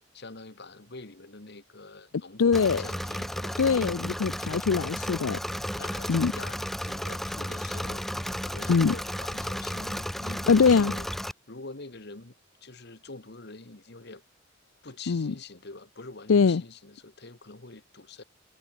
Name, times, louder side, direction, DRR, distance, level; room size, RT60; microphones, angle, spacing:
voice 1, 0.1-4.2 5.4-8.0 8.4-11.1 11.5-12.3 12.6-14.2 14.8-18.2, left 3 dB, 55° left, 1.7 m, -45 dB
voice 2, 2.4-2.8 3.6-5.4 6.1-6.3 8.7-8.9 10.5-10.9 15.1-15.3 16.3-16.6, left 5 dB, 85° left, 0.5 m, -22 dB
Engine / Mechanisms, 2.5-11.3, equal, ahead, 0.6 m, -33 dB
head